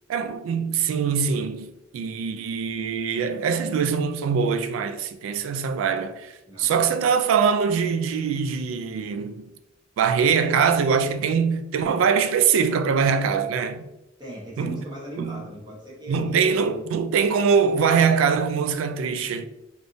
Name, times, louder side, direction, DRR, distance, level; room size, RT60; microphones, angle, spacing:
voice 1, 0.1-6.3 6.6-9.5 10.0-13.8 14.6-14.8 15.2-15.4 16.1-19.4, right 6 dB, 85° right, 0.3 m, -23 dB
voice 2, 6.5-6.8 14.2-16.8, right 1 dB, 20° right, 0.9 m, -39 dB
3.4 x 2.6 x 2.5 m
head